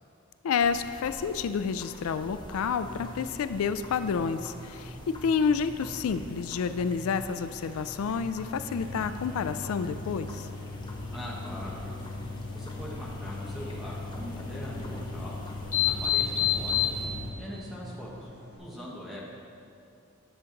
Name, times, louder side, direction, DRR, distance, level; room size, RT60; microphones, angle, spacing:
voice 1, 0.4-10.5, left 6 dB, 75° left, 12 dB, 0.3 m, -29 dB
sound 1, 0.6-17.1, left 1 dB, 20° left, 0.7 m, -47 dB
sound 2, 2.6-18.6, equal, 35° right, 2.2 m, -46 dB
sound 3, 8.6-17.3, left 8 dB, 35° left, 1.1 m, -33 dB
voice 2, 11.1-11.8 12.5-15.4 15.9-18.3 18.6-19.3, equal, ahead, -6 dB, 1.1 m, -42 dB
10.0 x 7.1 x 3.9 m, 2.5 s
head